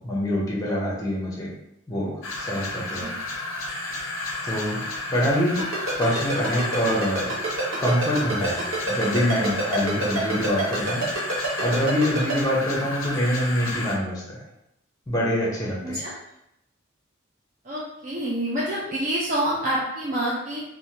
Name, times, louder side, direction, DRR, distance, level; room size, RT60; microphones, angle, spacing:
voice 1, 0.0-1.5 1.9-3.1 4.4-4.8 5.1-5.6 6.0-7.3 7.8-11.0 11.3-14.4 15.1-16.0, equal, 15° left, -4 dB, 0.6 m, -25 dB
sound 1, 2.2-14.0, left 2 dB, 80° left, 0.5 m, -32 dB
Ringtone, 5.6-12.3, right 3 dB, 85° right, 1.0 m, -27 dB
voice 2, 17.6-20.6, right 1 dB, 40° right, -5 dB, 0.4 m, -27 dB
3.1 x 2.1 x 2.7 m, 0.82 s
head